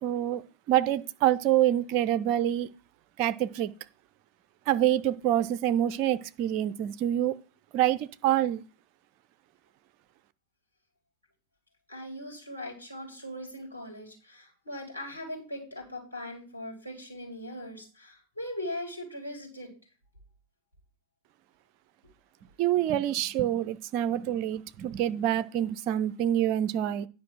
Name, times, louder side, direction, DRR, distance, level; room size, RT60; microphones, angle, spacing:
voice 1, 0.0-2.7 3.2-3.7 4.7-7.4 7.7-8.6 22.6-27.1, right 12 dB, 40° right, 0.6 m, -26 dB
voice 2, 11.9-19.7, left 1 dB, 85° left, 4.0 m, -40 dB
9.5 x 5.2 x 6.0 m
figure-of-eight pair, 90°, 0 cm